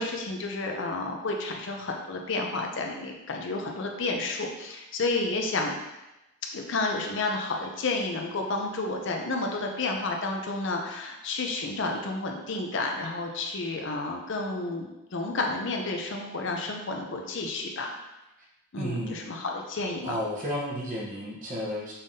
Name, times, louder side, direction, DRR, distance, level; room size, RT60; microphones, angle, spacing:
voice 1, 0.0-5.7 6.5-17.9 18.7-20.2, left 3 dB, 55° left, 2 dB, 0.5 m, -31 dB
voice 2, 18.8-19.2 20.0-21.9, equal, 35° right, -5 dB, 1.0 m, -32 dB
5.4 x 3.4 x 2.7 m, 0.97 s
head